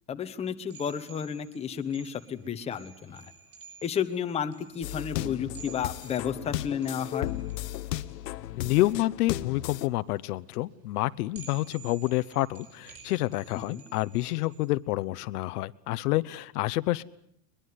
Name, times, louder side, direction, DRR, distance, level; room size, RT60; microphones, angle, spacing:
voice 1, 0.1-3.3 3.8-7.3 13.5-13.8, left 8 dB, 15° left, 7 dB, 1.0 m, -32 dB
sound 1, 0.7-14.7, right 7 dB, 30° right, 6.8 m, -53 dB
sound 2, 4.8-9.9, left 15 dB, 90° left, 1.1 m, -35 dB
voice 2, 8.6-17.0, left 18 dB, 70° left, 13 dB, 1.0 m, -28 dB
22.0 x 22.0 x 9.6 m, 0.69 s
supercardioid pair, 160°, 47 cm